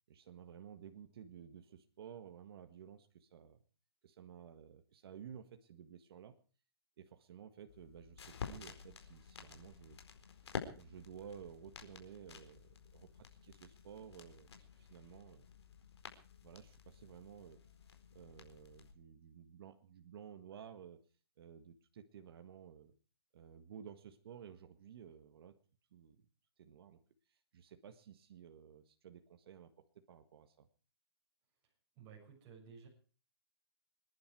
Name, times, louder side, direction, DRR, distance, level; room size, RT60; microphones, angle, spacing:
voice 1, 0.1-3.6 4.0-6.3 7.0-10.0 10.7-14.5 14.7-15.4 16.4-17.6 18.1-21.0 21.4-22.9 23.3-25.5 25.9-26.2 26.6-27.0 27.3-30.7, right 8 dB, 60° right, 7 dB, 1.7 m, -54 dB
sound 1, 7.7-18.9, left 6 dB, 75° left, 4.4 m, -51 dB
voice 2, 31.9-32.9, right 6 dB, 30° right, 0 dB, 6.5 m, -55 dB
26.0 x 11.0 x 4.7 m, 0.39 s
hypercardioid pair, 145°, 14 cm